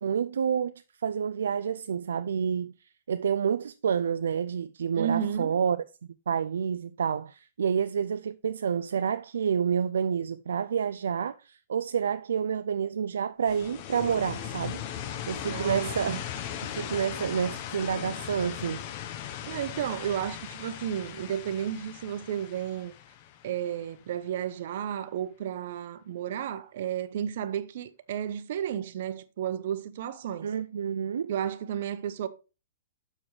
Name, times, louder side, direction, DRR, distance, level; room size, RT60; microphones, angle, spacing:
voice 1, 0.0-2.7 3.1-5.8 6.3-14.8 15.3-16.4 16.7-18.8 30.4-31.3, right 7 dB, 75° right, 0.3 m, -29 dB
voice 2, 5.0-5.6 15.5-16.2 19.5-22.9 23.4-30.5 31.3-32.3, right 9 dB, 60° right, 0.8 m, -32 dB
sound 1, 13.5-24.2, left 10 dB, 45° left, 0.9 m, -38 dB
7.0 x 6.9 x 3.1 m
hypercardioid pair, 125°, 0 cm